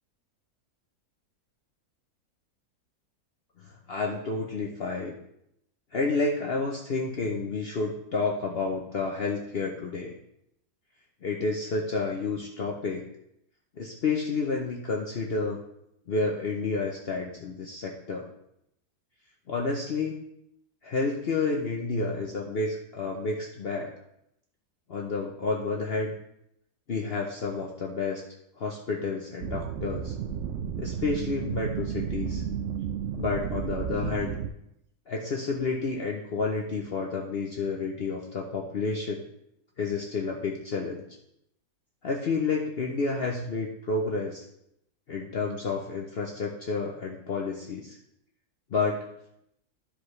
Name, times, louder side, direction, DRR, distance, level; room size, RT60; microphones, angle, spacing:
voice 1, 3.6-5.2 5.9-10.2 11.2-13.0 13.8-15.6 16.1-18.3 19.5-20.2 20.8-23.9 24.9-26.1 26.9-28.2 28.6-30.1 30.8-32.4 33.2-34.4 35.1-39.2 39.8-41.0 42.0-44.4 45.1-48.0 48.7-49.1, left 4 dB, 50° left, -1 dB, 0.8 m, -30 dB
sound 1, 29.4-34.5, right 8 dB, 70° right, 0.8 m, -32 dB
13.0 x 5.1 x 3.2 m, 0.78 s
omnidirectional pair, 1.6 m